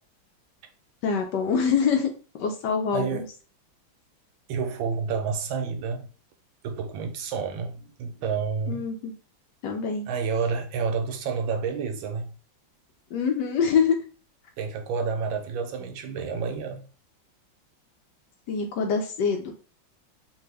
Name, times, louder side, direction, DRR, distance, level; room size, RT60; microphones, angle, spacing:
voice 1, 1.0-2.1 2.4-3.3 8.7-9.1 9.6-10.1 13.1-14.0 18.5-19.5, left 6 dB, 75° left, 1.1 m, -25 dB
voice 2, 2.9-3.3 4.5-6.1 6.6-8.8 10.1-12.3 14.6-16.8, right 5 dB, 80° right, 1.4 m, -29 dB
3.3 x 2.6 x 3.3 m
omnidirectional pair, 2.2 m